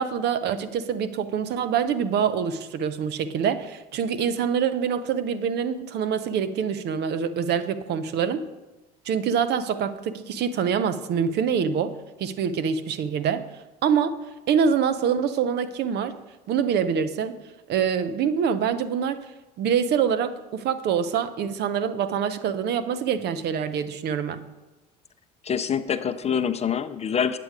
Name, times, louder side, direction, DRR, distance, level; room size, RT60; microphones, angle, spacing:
voice 1, 0.0-8.4 9.0-11.9 12.2-13.4 13.8-16.2 16.5-17.4 17.7-19.2 19.6-24.4, right 7 dB, 55° right, 11 dB, 0.7 m, -25 dB
voice 2, 25.4-27.4, left 7 dB, 30° left, 11 dB, 0.6 m, -25 dB
8.4 x 7.7 x 4.8 m, 1.1 s
hypercardioid pair, 70°, 20 cm